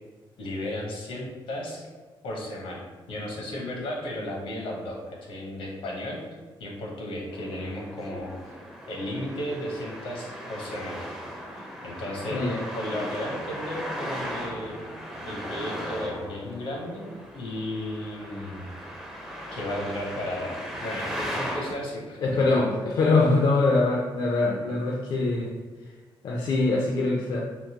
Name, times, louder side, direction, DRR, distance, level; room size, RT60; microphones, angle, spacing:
voice 1, 0.4-1.9 2.2-6.2 6.6-8.6 8.9-11.0 11.5-12.4 12.7-14.7 15.2-18.7 19.5-22.2, left 1 dB, 80° left, -1 dB, 0.9 m, -34 dB
Traffic noise roadway noise, 7.3-21.7, equal, 5° right, 0.5 m, -37 dB
voice 2, 12.3-12.6 22.2-25.5 26.2-27.4, left 3 dB, 60° left, -2 dB, 0.4 m, -23 dB
3.6 x 2.6 x 2.8 m, 1.3 s
cardioid pair, 140°, 9 cm